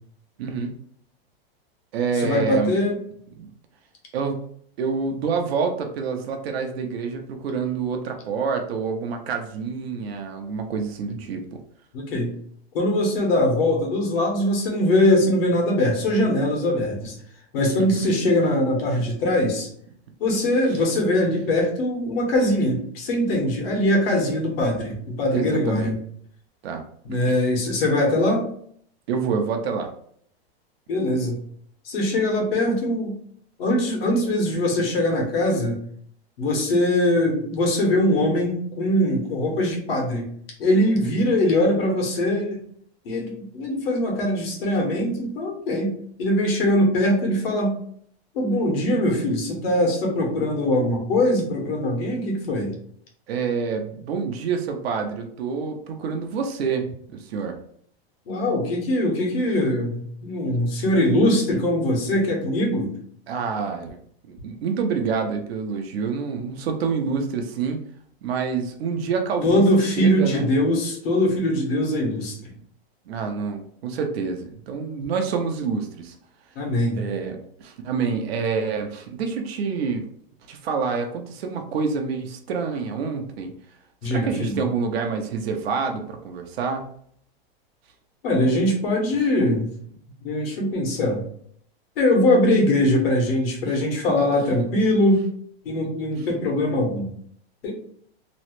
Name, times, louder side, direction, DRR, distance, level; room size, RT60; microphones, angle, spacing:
voice 1, 0.4-0.8 1.9-2.7 3.4-3.5 4.1-4.5 4.8-11.6 17.8-18.1 25.3-25.9 26.6-26.8 27.3-27.4 29.1-29.9 41.0-41.3 53.3-57.6 63.3-64.0 64.3-67.8 68.2-69.6 70.0-70.5 73.1-76.2 76.9-80.1 80.5-83.5 84.0-86.9 96.2-96.3, right 5 dB, 75° right, 4 dB, 0.7 m, -27 dB
voice 2, 2.2-3.0 11.9-12.3 12.7-17.2 17.5-19.7 20.2-25.9 27.0-28.4 30.9-31.4 31.8-33.2 33.6-35.8 36.4-40.3 40.6-42.6 43.0-45.9 46.2-47.7 48.3-52.8 58.3-62.9 69.4-72.5 76.5-77.0 84.0-84.6 88.2-89.7 90.2-91.2 92.0-95.2 95.6-97.1 97.6-97.7, left 1 dB, 65° left, -1 dB, 1.2 m, -22 dB
3.0 x 2.1 x 3.0 m, 0.62 s
supercardioid pair, 155°, 31 cm